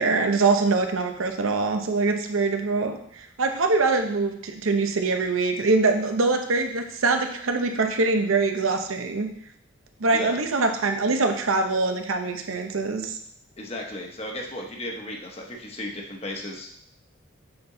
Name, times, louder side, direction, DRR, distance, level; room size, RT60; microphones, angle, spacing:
voice 1, 0.0-9.3 10.0-13.2, right 3 dB, 90° right, 5 dB, 0.8 m, -23 dB
voice 2, 10.1-10.4 13.6-16.7, left 1 dB, 30° left, 1 dB, 1.0 m, -35 dB
7.7 x 4.3 x 3.8 m, 0.66 s
head